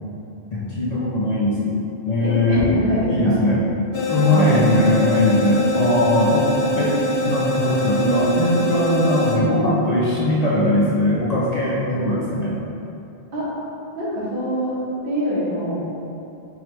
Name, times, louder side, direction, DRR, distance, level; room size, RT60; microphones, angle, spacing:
voice 1, 0.5-1.7 2.1-2.6 3.1-3.6 4.1-6.5 6.8-7.0 7.2-12.6, left 1 dB, 50° left, -7 dB, 0.6 m, -20 dB
voice 2, 2.2-3.4 4.2-4.5 13.3-13.4 13.9-14.8 15.0-15.8, equal, 60° right, -8 dB, 1.2 m, -24 dB
sound 1, 3.9-9.4, equal, 75° left, 0.9 m, -23 dB
4.9 x 3.1 x 3.0 m, 2.8 s
omnidirectional pair, 1.1 m